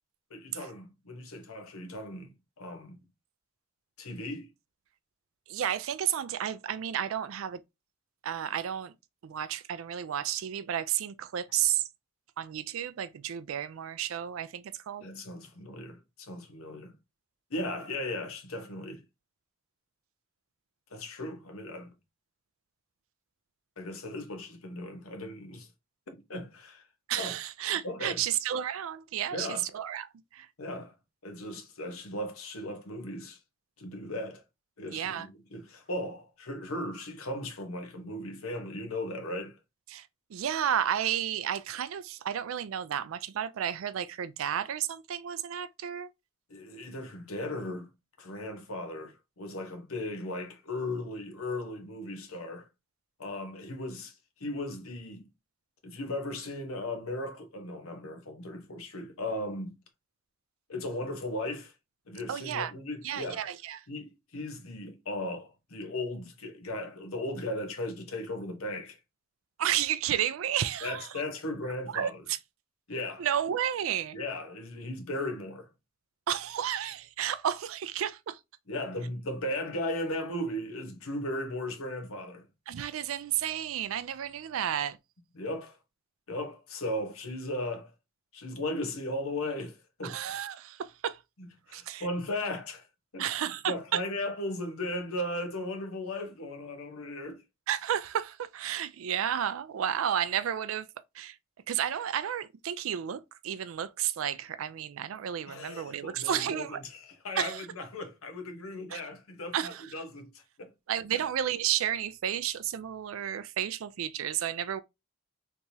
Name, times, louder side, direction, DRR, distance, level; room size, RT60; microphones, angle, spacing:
voice 1, 0.3-3.0 4.0-4.5 15.0-16.9 17.5-19.0 20.9-21.9 23.8-25.7 26.1-26.8 27.2-27.3 27.8-28.2 29.3-29.7 30.6-30.9 31.2-33.4 33.8-34.4 34.8-39.6 46.5-47.9 48.2-52.7 53.2-54.1 54.4-55.3 55.8-59.7 60.7-61.7 62.1-63.4 63.9-69.0 70.8-72.2 72.9-73.3 74.1-75.7 78.7-82.4 85.3-85.8 86.3-87.9 88.3-90.2 91.4-92.9 93.1-93.3 93.7-97.4 105.5-110.7 111.1-111.2, left 1 dB, 80° left, 1.0 m, -37 dB
voice 2, 5.5-7.6 8.2-8.9 9.2-11.8 12.4-15.0 27.1-29.5 29.7-30.5 34.9-35.3 39.9-46.1 62.3-62.7 63.0-63.8 69.6-71.1 71.9-72.4 73.2-74.2 76.3-78.4 82.7-85.0 90.0-91.2 91.7-92.1 93.2-94.0 97.7-100.9 101.1-101.4 101.7-106.8 107.4-107.7 108.9-109.0 109.5-109.9 110.9-114.8, right 10 dB, 70° right, 0.4 m, -32 dB
3.4 x 3.0 x 2.7 m
head